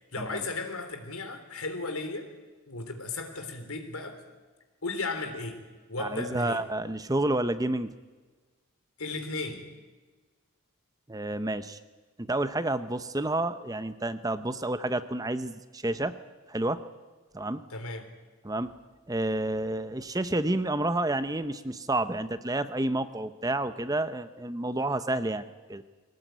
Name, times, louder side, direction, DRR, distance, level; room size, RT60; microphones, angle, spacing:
voice 1, 0.1-2.3 2.7-4.2 4.8-5.6 5.9-6.6 9.0-9.7 17.7-18.1, left 3 dB, 75° left, 7 dB, 3.5 m, -35 dB
voice 2, 6.0-7.9 11.1-11.8 12.2-16.1 16.5-16.8 17.3-17.6 18.4-18.7 19.1-25.8, right 1 dB, 15° right, 11 dB, 0.8 m, -30 dB
22.0 x 18.5 x 9.3 m, 1.3 s
head